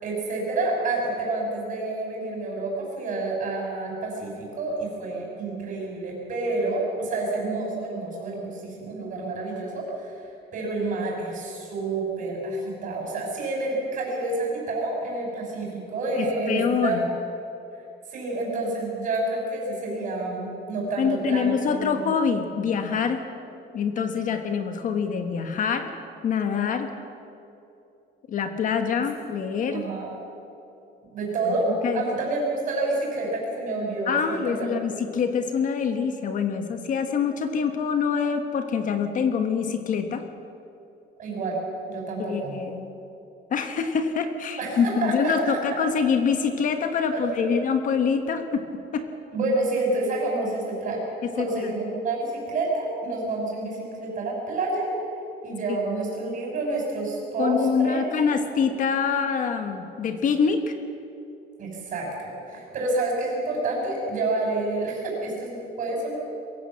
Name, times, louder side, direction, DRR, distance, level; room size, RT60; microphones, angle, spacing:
voice 1, 0.0-17.0 18.1-22.1 29.7-30.1 31.1-34.7 41.2-41.6 41.9-42.5 44.6-45.8 47.1-47.5 49.3-51.0 51.3-54.9 55.4-58.1 61.6-66.1, right 2 dB, 40° right, -1 dB, 6.0 m, -28 dB
voice 2, 16.2-17.1 21.0-23.2 23.7-25.9 26.2-26.9 28.3-29.9 31.8-32.0 34.1-40.2 42.2-43.0 43.5-48.6 48.9-49.0 51.4-51.7 57.4-60.7, left 6 dB, 40° left, 7 dB, 1.2 m, -25 dB
22.5 x 16.5 x 7.5 m, 2.8 s
cardioid pair, 180°, 20 cm